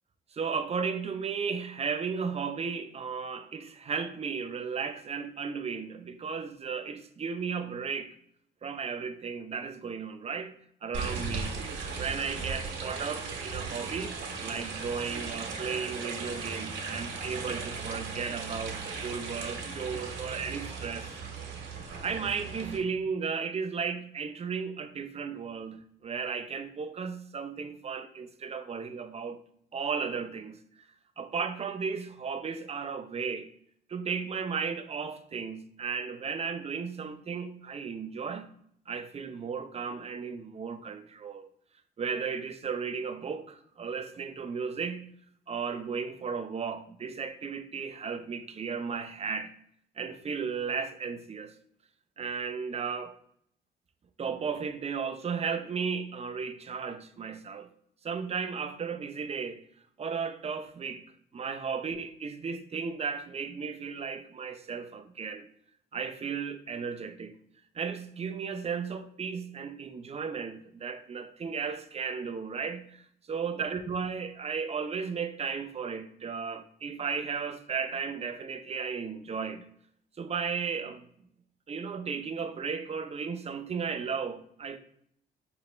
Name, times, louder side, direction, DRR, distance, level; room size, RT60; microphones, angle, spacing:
voice 1, 0.3-8.1 8.6-11.6 11.9-21.1 22.0-29.4 29.7-30.6 31.2-33.5 33.9-38.5 38.9-41.5 42.0-45.1 45.5-49.5 50.0-51.5 52.2-53.1 54.2-57.7 58.0-59.6 60.0-61.0 61.3-65.5 65.9-67.3 67.7-73.0 73.3-79.6 80.2-81.1 81.7-84.8, right 6 dB, 30° right, 0.5 m, -35 dB
sound 1, 10.9-22.8, right 4 dB, 70° right, 1.3 m, -37 dB
4.6 x 2.9 x 3.1 m
cardioid pair, 90°, 20 cm